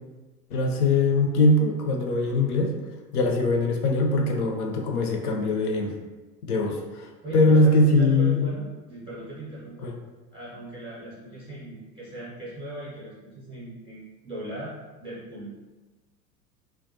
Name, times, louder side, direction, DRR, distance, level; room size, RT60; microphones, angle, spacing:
voice 1, 0.5-2.7 3.1-5.9 6.4-7.1 7.3-8.5 9.8-9.9, left 2 dB, 65° left, 2 dB, 0.6 m, -22 dB
voice 2, 7.2-9.9 10.3-14.7 15.0-15.5, right 1 dB, 10° right, -8 dB, 0.5 m, -38 dB
2.3 x 2.1 x 2.6 m, 1.2 s
figure-of-eight pair, 85°, 47 cm